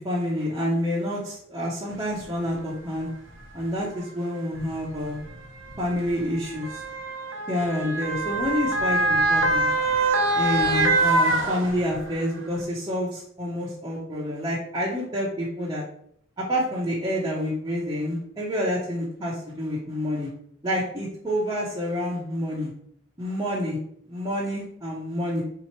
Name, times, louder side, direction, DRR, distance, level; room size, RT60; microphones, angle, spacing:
voice 1, 0.0-3.1 3.5-5.3 5.8-6.8 7.5-9.7 10.4-15.8 16.4-20.3 20.6-22.7 23.2-23.8 24.1-25.4, equal, 20° right, -6 dB, 0.7 m, -28 dB
Motor vehicle (road) / Siren, 2.2-2.3 3.3-3.5 4.6-12.2 12.6-12.7, right 2 dB, 75° right, 0.7 m, -24 dB
3.7 x 2.9 x 4.4 m, 0.65 s
head